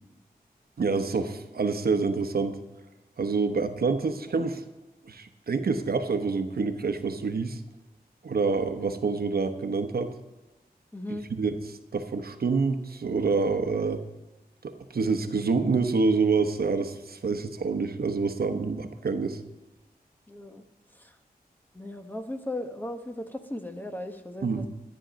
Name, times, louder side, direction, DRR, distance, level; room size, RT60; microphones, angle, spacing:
voice 1, 0.8-2.6 3.2-4.6 5.1-7.6 8.2-10.1 11.1-14.0 14.6-19.4 24.4-24.7, right 4 dB, 70° right, 8 dB, 0.9 m, -27 dB
voice 2, 10.9-11.2 20.3-20.6 20.9-21.2 21.7-24.7, left 1 dB, 10° left, 6 dB, 1.1 m, -37 dB
13.0 x 9.1 x 5.1 m, 1.1 s
wide cardioid pair, 80°, 16 cm